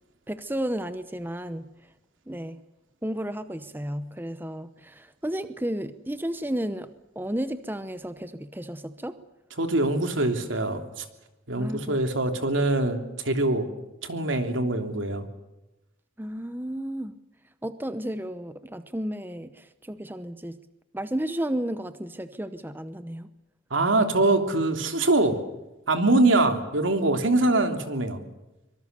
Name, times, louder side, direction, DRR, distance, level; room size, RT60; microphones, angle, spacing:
voice 1, 0.3-1.7 2.3-2.6 3.0-9.2 11.5-12.0 16.2-17.1 17.6-20.6 20.9-23.3, right 1 dB, 10° right, 12 dB, 0.8 m, -33 dB
voice 2, 9.6-11.0 11.5-13.7 14.0-15.3 23.7-25.4 25.9-28.2, right 2 dB, 75° right, 6 dB, 3.1 m, -23 dB
25.0 x 23.5 x 6.8 m, 1.0 s
head